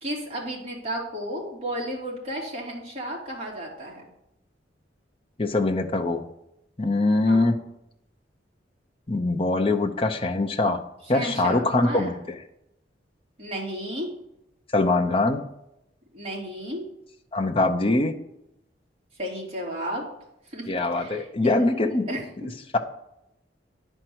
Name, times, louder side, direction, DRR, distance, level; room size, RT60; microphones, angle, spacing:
voice 1, 0.0-4.1 7.2-7.5 11.1-12.2 13.4-14.1 16.1-16.8 19.2-20.0 20.5-21.7 22.1-22.2, right 1 dB, 35° right, -4 dB, 2.9 m, -33 dB
voice 2, 5.4-6.2 6.8-7.6 9.1-10.8 11.1-12.2 14.7-15.4 17.3-18.1 20.7-22.1 22.7-22.8, left 2 dB, 30° left, 4 dB, 0.8 m, -23 dB
10.5 x 4.5 x 7.9 m, 0.82 s
head